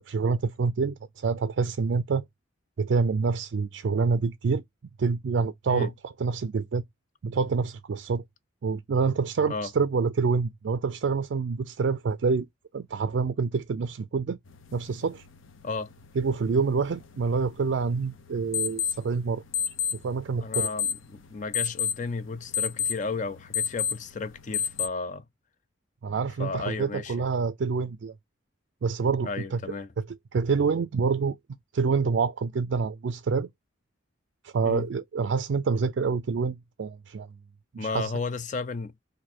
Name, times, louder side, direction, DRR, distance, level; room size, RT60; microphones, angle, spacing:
voice 1, 0.0-2.2 2.8-4.6 5.0-6.8 7.2-8.2 8.6-12.5 12.7-14.4 14.7-15.2 16.2-19.4 20.0-20.7 26.0-28.1 28.8-29.6 30.3-31.4 31.7-33.5 34.4-37.3 37.7-38.1, right 5 dB, 65° right, 0.4 m, -27 dB
sound 1, 14.5-24.9, left 8 dB, 85° left, 0.7 m, -33 dB
voice 2, 20.4-25.2 26.4-27.3 29.2-29.9 34.6-34.9 37.8-38.9, left 4 dB, 40° left, 0.4 m, -33 dB
4.2 x 2.6 x 4.2 m
head